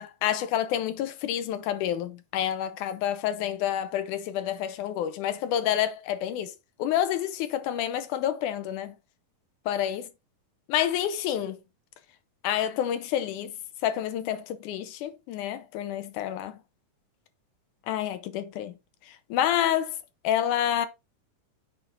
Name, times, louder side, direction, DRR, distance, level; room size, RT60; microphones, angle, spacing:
voice 1, 0.0-6.5 6.8-8.9 9.7-10.1 10.7-11.6 12.4-13.5 13.8-16.6 17.9-18.7 19.3-20.0 20.2-20.9, left 11 dB, 75° left, 2.2 m, -28 dB
8.4 x 4.0 x 3.5 m
omnidirectional pair, 3.8 m